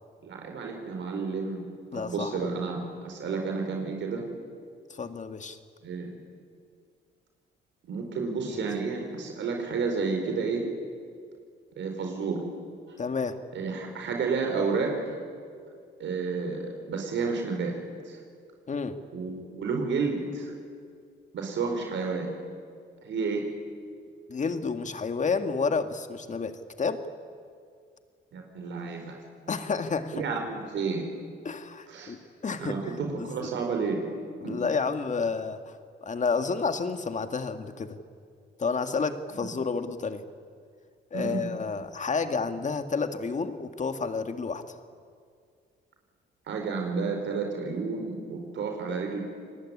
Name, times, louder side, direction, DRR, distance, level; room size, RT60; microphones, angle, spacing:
voice 1, 0.2-1.6 1.9-4.2 5.8-6.1 7.8-10.6 11.8-12.4 12.9-13.0 13.5-15.2 16.0-17.8 18.0-18.2 19.1-20.5 21.3-22.3 23.0-23.5 28.3-29.1 30.1-31.1 31.9-32.1 32.6-34.0 34.4-34.6 39.3-39.5 41.1-41.4 46.5-49.2, right 4 dB, 70° right, 3 dB, 4.7 m, -31 dB
voice 2, 1.9-2.5 4.9-5.6 8.5-8.6 13.0-13.4 18.7-19.0 24.3-27.0 29.5-30.2 31.4-32.2 32.4-32.9 33.2-33.5 34.4-35.8 36.0-38.0 38.6-40.2 41.1-44.8, left 4 dB, 40° left, 8 dB, 2.0 m, -30 dB
28.5 x 20.0 x 10.0 m, 2.2 s
cardioid pair, 90°, 20 cm